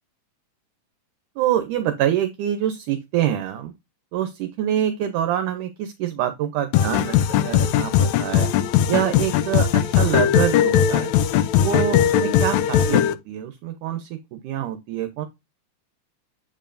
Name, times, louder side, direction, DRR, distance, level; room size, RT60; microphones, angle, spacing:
voice 1, 1.4-3.7 4.1-8.5 8.9-11.1 11.6-15.3, right 11 dB, 75° right, 2.1 m, -25 dB
sound 1, 6.7-13.1, left 10 dB, 85° left, 1.6 m, -19 dB
8.8 x 5.1 x 2.5 m
omnidirectional pair, 3.9 m